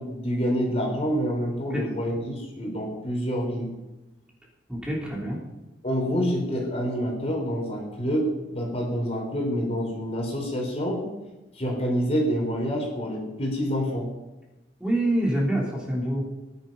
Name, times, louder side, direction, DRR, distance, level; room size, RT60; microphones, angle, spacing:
voice 1, 0.0-3.7 5.8-11.1 11.5-14.1, equal, 35° left, 0 dB, 3.8 m, -27 dB
voice 2, 4.7-5.4 14.8-16.2, right 1 dB, 5° right, -4 dB, 3.4 m, -26 dB
18.5 x 10.5 x 5.4 m, 1.0 s
head